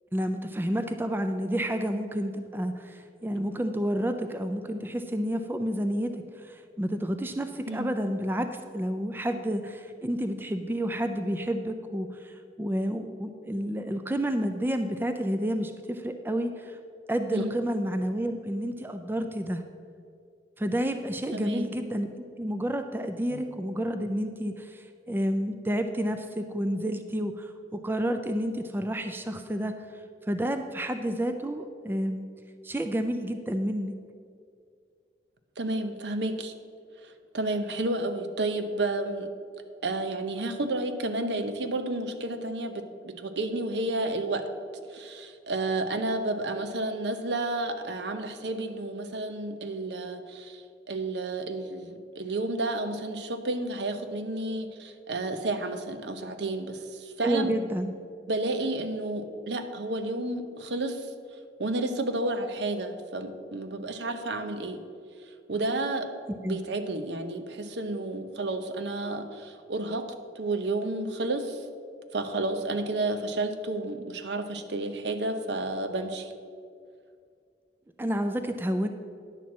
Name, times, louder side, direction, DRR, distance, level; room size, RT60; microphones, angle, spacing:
voice 1, 0.1-8.5 8.7-16.8 17.1-19.6 20.6-22.1 22.4-32.3 32.6-34.0 57.2-57.9 66.4-66.6 78.0-78.9, equal, 10° right, 7 dB, 0.3 m, -30 dB
voice 2, 21.3-21.7 23.3-23.4 35.6-36.5 37.0-39.3 39.8-44.5 44.9-57.6 58.3-61.1 61.6-64.8 65.5-66.1 66.4-70.1 70.3-71.6 72.1-76.3, right 2 dB, 80° right, 8 dB, 0.7 m, -31 dB
10.0 x 4.4 x 7.2 m, 2.2 s
head